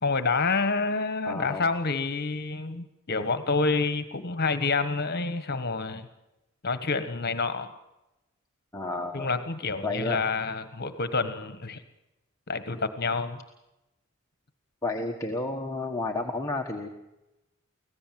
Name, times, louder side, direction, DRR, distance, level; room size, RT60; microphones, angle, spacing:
voice 1, 0.0-6.1 6.6-7.7 9.1-11.8 12.5-13.4, left 4 dB, 50° left, 11 dB, 1.4 m, -28 dB
voice 2, 1.2-1.7 8.7-9.3 9.8-10.2 14.8-16.9, left 2 dB, 15° left, 2 dB, 1.4 m, -31 dB
25.5 x 16.5 x 7.6 m, 0.96 s
head